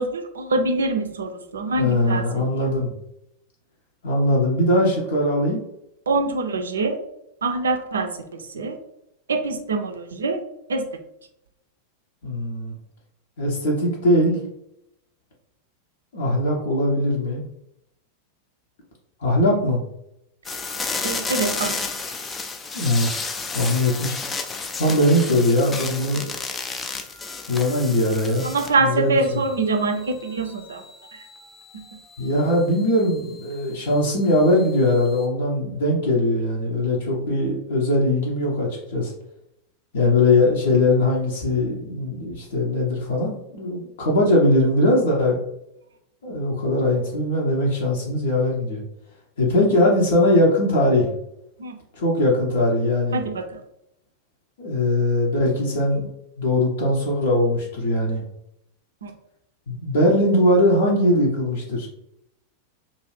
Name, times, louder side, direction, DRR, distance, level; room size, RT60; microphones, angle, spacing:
voice 1, 0.0-2.4 6.1-7.0 7.4-8.8 9.3-10.4 10.7-10.9 21.0-21.9 28.4-30.8 31.1-31.2 31.7-31.8 51.6-51.8 53.1-53.6 59.0-59.1, right 3 dB, 70° right, 5 dB, 0.4 m, -24 dB
voice 2, 1.8-2.9 4.0-5.6 12.2-12.7 13.4-14.4 16.1-17.5 19.2-19.8 22.7-23.3 23.5-24.1 24.8-26.3 27.5-28.5 28.8-29.4 32.2-39.1 39.9-45.4 46.2-48.8 49.4-51.1 52.0-53.2 54.6-56.1 56.4-58.2 59.7-61.9, left 1 dB, 60° left, -3 dB, 0.6 m, -20 dB
sound 1, 20.4-28.9 29.2-35.2, left 4 dB, 15° left, 0.4 m, -33 dB
2.6 x 2.4 x 3.1 m, 0.79 s
figure-of-eight pair, 90°, 0 cm